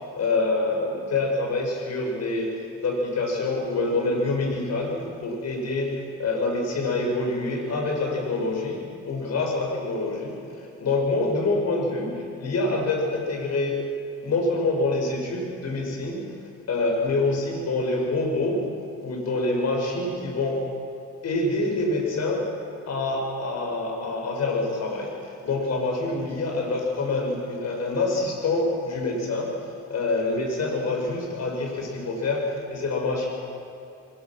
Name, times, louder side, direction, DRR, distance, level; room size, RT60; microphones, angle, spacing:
voice 1, 0.2-13.8 14.2-16.2 16.7-18.6 19.0-20.6 21.2-22.5 22.9-29.5 29.9-33.3, left 2 dB, 60° left, 0 dB, 6.5 m, -26 dB
25.5 x 20.0 x 6.2 m, 2.7 s
cardioid pair, 90°, 30 cm